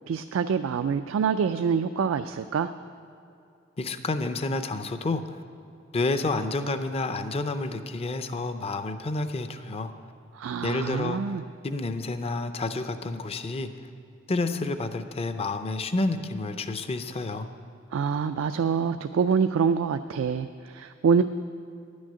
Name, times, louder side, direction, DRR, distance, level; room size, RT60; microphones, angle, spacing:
voice 1, 0.1-2.7 10.3-11.4 17.9-21.2, right 6 dB, 85° right, 9 dB, 0.3 m, -25 dB
voice 2, 3.8-5.4 5.9-9.9 10.6-11.4 11.6-13.9 14.3-17.5, left 2 dB, 30° left, 10 dB, 0.5 m, -29 dB
10.5 x 6.3 x 8.6 m, 2.6 s
head